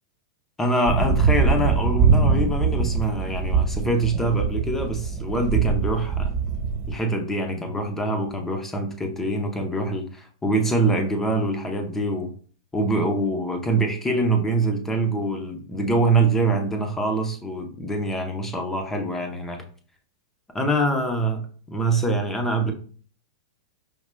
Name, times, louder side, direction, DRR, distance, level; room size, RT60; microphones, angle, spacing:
voice 1, 0.6-6.3 6.9-12.3 12.7-19.6 20.5-22.7, right 2 dB, 10° left, 0.7 m, -24 dB
sound 1, 0.9-6.9, right 5 dB, 40° right, 1.2 m, -22 dB
5.0 x 2.9 x 2.2 m
hypercardioid pair, 115°, 3 cm